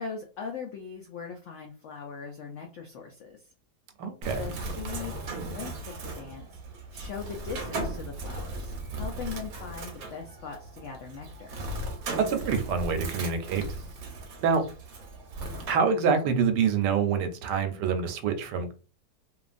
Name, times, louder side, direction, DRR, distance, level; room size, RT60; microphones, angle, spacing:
voice 1, 0.0-3.5 4.3-6.5 6.9-11.6, left 6 dB, 75° left, 0.6 m, -40 dB
voice 2, 4.0-4.4 12.2-13.7 14.4-14.6 15.7-18.7, right 6 dB, 85° right, 1.2 m, -26 dB
Bird, 4.2-15.7, right 2 dB, 70° right, 1.1 m, -37 dB
3.0 x 2.3 x 2.4 m
omnidirectional pair, 1.8 m